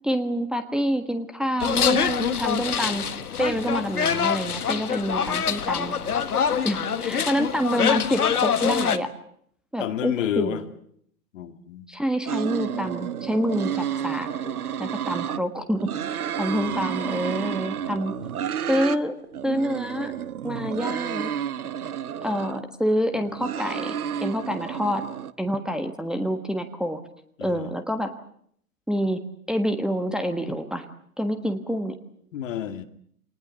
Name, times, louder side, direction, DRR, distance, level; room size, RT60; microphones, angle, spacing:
voice 1, 0.0-3.0 3.4-5.9 6.6-9.1 9.7-10.6 11.9-14.3 14.8-18.1 18.7-19.1 19.4-20.1 20.4-21.3 22.2-23.9 24.2-25.0 25.4-27.0 27.4-28.1 28.9-29.2 29.5-30.9 31.2-32.0, equal, ahead, 5 dB, 1.4 m, -27 dB
sound 1, 1.6-9.0, left 7 dB, 80° left, 1.5 m, -25 dB
voice 2, 9.8-10.6 11.3-11.9 14.4-14.6 16.5-16.8 27.4-27.7 32.3-32.8, left 10 dB, 55° left, 9 dB, 2.2 m, -30 dB
sound 2, 12.3-15.4 15.8-19.0 19.3-22.6 23.1-25.3, right 9 dB, 75° right, 1.1 m, -31 dB
25.5 x 19.5 x 8.2 m, 0.66 s
hypercardioid pair, 115°, 45 cm